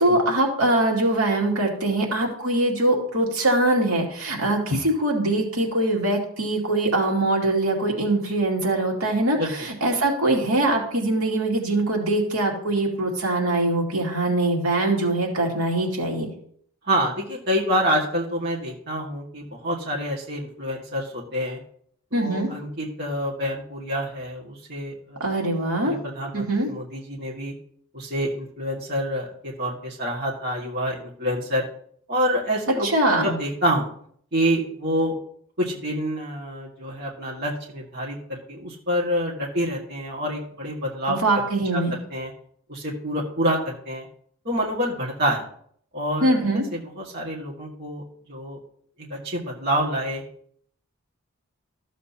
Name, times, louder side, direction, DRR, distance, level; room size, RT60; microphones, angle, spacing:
voice 1, 0.0-16.3 22.1-22.5 25.2-25.9 26.3-26.7 32.8-33.3 41.1-42.0 46.2-46.7, right 2 dB, 85° right, -1 dB, 2.4 m, -22 dB
voice 2, 16.8-21.6 22.1-25.2 25.8-27.5 27.9-31.6 32.1-32.9 33.2-33.9 34.3-35.2 35.6-41.2 41.7-42.3 42.7-44.1 44.4-45.4 45.9-46.4 46.7-48.0 48.3-48.6 49.0-50.2, equal, 50° right, -4 dB, 1.8 m, -27 dB
13.5 x 7.5 x 2.8 m, 0.62 s
head